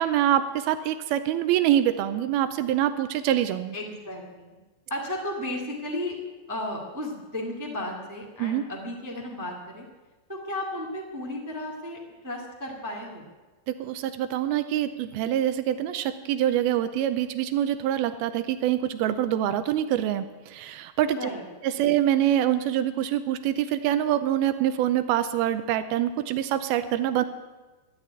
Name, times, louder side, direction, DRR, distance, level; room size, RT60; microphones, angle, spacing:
voice 1, 0.0-3.8 8.4-8.6 13.7-21.3 21.6-27.2, right 11 dB, 80° right, 11 dB, 2.3 m, -25 dB
voice 2, 3.7-4.5 4.9-6.2 6.5-9.8 10.3-12.0 12.2-13.3 21.1-21.4 21.8-21.9, left 1 dB, 25° right, -1 dB, 0.4 m, -34 dB
13.5 x 9.9 x 9.5 m, 1.2 s
omnidirectional pair, 5.0 m